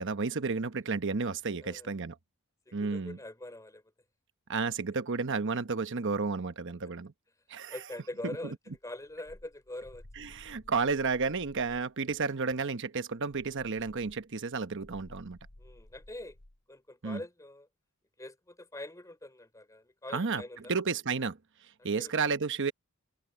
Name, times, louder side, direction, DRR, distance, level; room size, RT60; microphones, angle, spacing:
voice 1, 0.0-2.2 2.7-3.2 4.5-7.1 7.5-7.8 8.2-8.6 10.2-15.4 17.0-17.2 20.1-21.4 21.8-22.7, right 4 dB, 55° right, 1.0 m, -32 dB
voice 2, 1.6-1.9 2.7-3.8 7.7-8.5 8.8-10.4 15.6-16.4 16.7-17.7 18.2-20.7 22.0-22.1, left 1 dB, 15° left, 3.1 m, -43 dB
sound 1, 8.7-11.9 13.1-16.6, left 1 dB, 85° left, 2.1 m, -55 dB
head